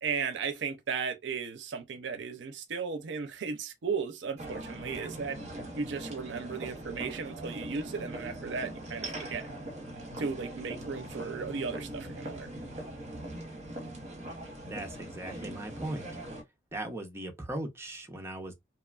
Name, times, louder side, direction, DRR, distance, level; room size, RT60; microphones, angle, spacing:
voice 1, 0.0-5.4 5.7-9.5 10.2-12.5, right 5 dB, 70° right, 0.5 m, -35 dB
sound 1, 4.4-16.4, right 1 dB, 35° right, 0.9 m, -41 dB
voice 2, 14.6-16.1 16.7-18.5, right 1 dB, 15° right, 0.6 m, -38 dB
2.9 x 2.2 x 2.3 m
head